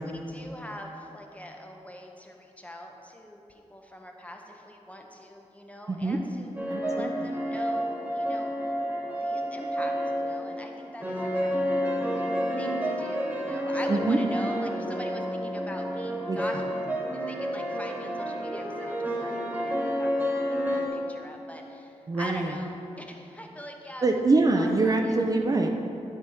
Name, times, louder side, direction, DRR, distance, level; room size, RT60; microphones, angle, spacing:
voice 1, 0.0-6.5 6.9-8.5 9.2-11.7 12.6-16.7 17.1-20.1 20.5-24.1 24.5-25.2 25.5-25.7, left 1 dB, 10° left, 2 dB, 0.7 m, -43 dB
voice 2, 5.9-6.2 6.7-7.3 13.9-14.2 16.3-16.4 22.1-22.5 24.0-25.7, right 3 dB, 30° right, 3 dB, 0.5 m, -24 dB
sound 1, 6.6-20.9, equal, 15° right, 1.3 m, -30 dB
10.5 x 3.4 x 5.6 m, 2.8 s
wide cardioid pair, 105°, 12 cm